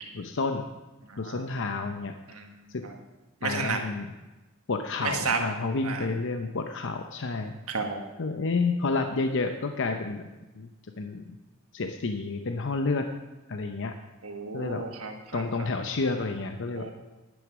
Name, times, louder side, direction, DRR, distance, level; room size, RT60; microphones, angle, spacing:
voice 1, 0.1-0.7 1.2-2.1 2.7-2.8 3.4-4.1 4.7-7.5 8.2-10.2 10.6-10.7 11.0-11.4 11.7-13.1 13.5-13.9 14.5-14.8 15.3-16.9, left 3 dB, 60° left, 6 dB, 0.7 m, -30 dB
voice 2, 3.4-3.8 5.3-5.4 5.8-6.0 7.7-8.0 14.2-15.4 16.8-16.9, right 4 dB, 70° right, 4 dB, 1.6 m, -31 dB
10.5 x 9.7 x 6.2 m, 1.1 s
head